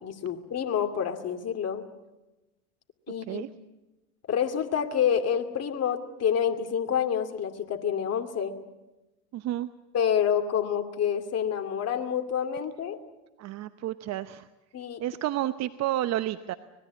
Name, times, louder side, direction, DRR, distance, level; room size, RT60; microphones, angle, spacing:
voice 1, 0.0-1.9 3.1-3.4 4.3-8.5 9.9-13.0 14.7-15.0, left 8 dB, 35° left, 5 dB, 2.6 m, -28 dB
voice 2, 9.3-9.7 13.4-14.5 15.0-16.5, right 13 dB, 35° right, 12 dB, 0.9 m, -30 dB
25.0 x 20.0 x 8.3 m, 1.0 s
hypercardioid pair, 90°, 45 cm